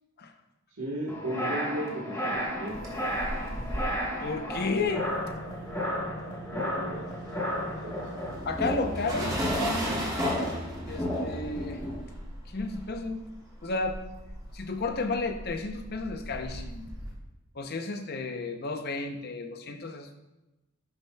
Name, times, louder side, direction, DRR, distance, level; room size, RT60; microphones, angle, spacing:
voice 1, 0.8-2.7 6.5-7.0 7.9-8.1, right 1 dB, 80° right, -6 dB, 1.4 m, -35 dB
sound 1, 1.1-12.0, equal, 10° left, 1.3 m, -33 dB
sound 2, 2.5-6.1 6.4-17.1, equal, 20° right, 2.3 m, -37 dB
voice 2, 4.2-5.1 8.4-9.3 9.6-10.1 10.9-11.8 12.5-13.3 13.6-14.0 14.5-16.9 17.5-20.2, left 3 dB, 45° left, 6 dB, 0.7 m, -32 dB
11.0 x 5.9 x 2.3 m, 1.0 s
head